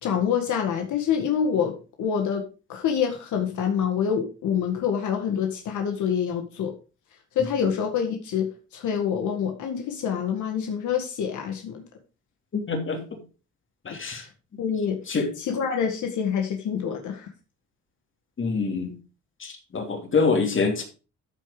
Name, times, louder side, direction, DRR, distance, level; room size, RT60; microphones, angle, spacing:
voice 1, 0.0-2.4 2.7-6.7 7.4-11.8 14.6-15.0 15.4-17.3, left 7 dB, 75° left, 3 dB, 1.9 m, -26 dB
voice 2, 12.5-13.0 13.8-14.2 15.1-15.3 18.4-18.9 19.4-20.8, left 4 dB, 40° left, 4 dB, 3.0 m, -25 dB
13.0 x 5.1 x 5.0 m, 0.34 s
cardioid pair, 90°, 30 cm